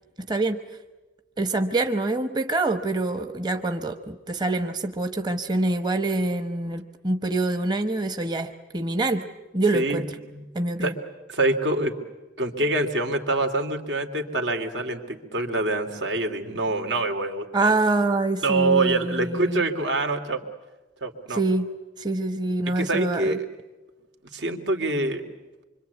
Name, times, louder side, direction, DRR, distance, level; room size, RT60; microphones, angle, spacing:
voice 1, 0.3-0.6 1.4-9.3 9.5-10.1 10.5-10.9 17.5-19.6 21.3-21.7 22.0-23.4, right 2 dB, 25° right, 8 dB, 0.9 m, -25 dB
voice 2, 9.7-10.0 10.3-10.4 10.8-10.9 11.3-12.0 12.4-17.7 18.4-20.4 21.0-21.4 22.8-23.5 24.3-25.2, right 2 dB, 85° right, 5 dB, 2.8 m, -25 dB
25.5 x 25.0 x 8.2 m, 1.2 s
head